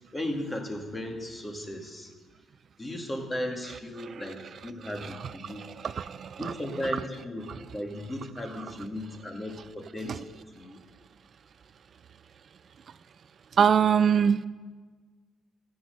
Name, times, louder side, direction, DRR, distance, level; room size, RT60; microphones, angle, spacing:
voice 1, 0.1-2.1 2.8-5.6 6.4-10.3 10.5-10.8, left 1 dB, 20° left, 3 dB, 2.3 m, -36 dB
voice 2, 5.4-6.5 10.1-10.2 13.6-14.4, right 7 dB, 55° right, 14 dB, 0.4 m, -23 dB
15.5 x 7.9 x 6.6 m, 1.4 s
cardioid pair, 90°, 0 cm